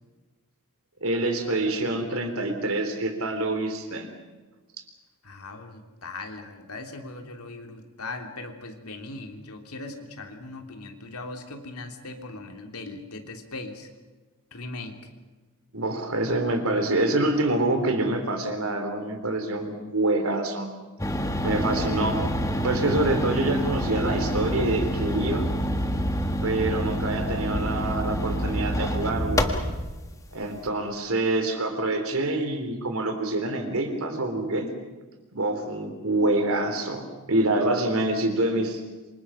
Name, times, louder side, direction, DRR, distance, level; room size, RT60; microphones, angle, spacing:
voice 1, 1.0-4.1 15.7-20.7 21.4-22.2 22.6-25.5 26.4-29.5 30.3-34.7 35.3-38.8, right 2 dB, 70° right, 6 dB, 3.7 m, -26 dB
voice 2, 5.2-13.9 14.5-15.0, left 2 dB, 85° left, 4 dB, 3.1 m, -39 dB
sound 1, 21.0-29.9, equal, 15° left, 1.6 m, -27 dB
27.0 x 25.5 x 5.7 m, 1.2 s
head